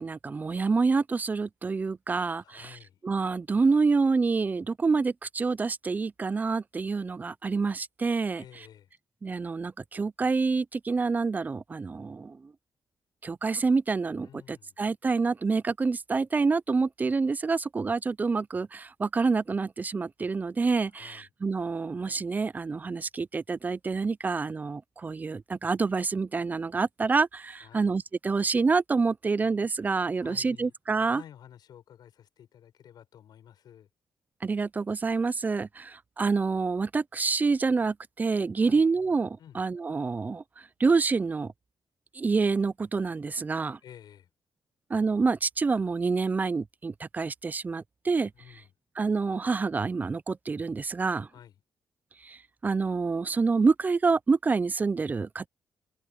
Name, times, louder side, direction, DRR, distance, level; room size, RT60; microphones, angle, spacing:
voice 1, 0.0-2.8 3.0-8.4 9.2-12.4 13.2-31.2 34.4-40.4 40.8-41.5 42.2-43.8 44.9-48.3 49.0-51.3 52.2-52.4 52.6-55.5, right 4 dB, 25° right, 0.4 m, -27 dB
voice 2, 2.4-3.0 8.3-8.9 14.2-14.8 20.9-21.3 27.5-27.9 30.2-33.9 38.6-38.9 39.4-39.6 43.8-44.3 48.3-48.7 51.3-51.6, left 9 dB, 70° left, 7.3 m, -52 dB
cardioid pair, 130°, 7 cm